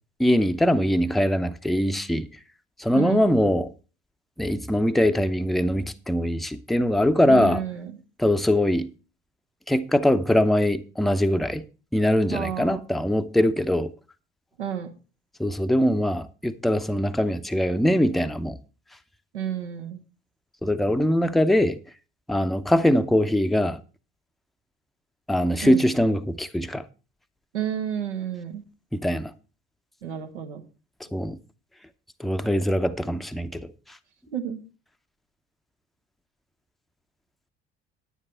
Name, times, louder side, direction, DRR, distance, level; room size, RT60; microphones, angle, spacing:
voice 1, 0.2-2.3 2.8-3.7 4.4-7.6 8.2-8.9 9.7-11.6 11.9-13.9 15.4-18.6 20.6-21.8 22.3-23.8 25.3-26.9 28.9-29.3 31.0-31.4 32.2-34.0, left 1 dB, ahead, 0.7 m, -22 dB
voice 2, 2.9-3.3 7.3-7.9 12.3-12.8 14.6-14.9 19.3-20.0 25.6-25.9 27.5-28.6 30.0-30.6 34.3-34.6, right 9 dB, 80° right, 1.3 m, -31 dB
10.0 x 9.6 x 4.4 m
figure-of-eight pair, 60°, 34 cm